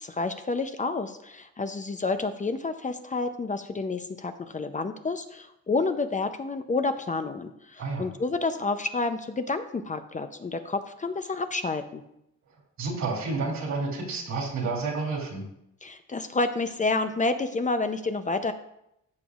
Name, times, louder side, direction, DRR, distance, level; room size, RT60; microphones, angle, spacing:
voice 1, 0.0-12.0 15.8-18.5, left 3 dB, 25° left, 8 dB, 0.6 m, -29 dB
voice 2, 12.8-15.5, right 3 dB, 70° right, 0 dB, 2.6 m, -30 dB
14.5 x 6.1 x 2.4 m, 0.80 s
cardioid pair, 90°, 30 cm